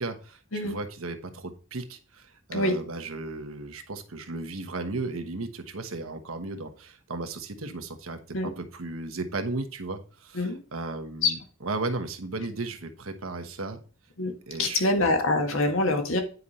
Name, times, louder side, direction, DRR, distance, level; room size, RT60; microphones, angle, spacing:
voice 1, 0.0-10.4 10.7-13.8 14.5-14.9 15.4-15.6, right 3 dB, 85° right, 7 dB, 1.2 m, -35 dB
voice 2, 14.6-16.2, left 2 dB, 75° left, 4 dB, 1.7 m, -25 dB
9.5 x 5.1 x 4.2 m, 0.39 s
head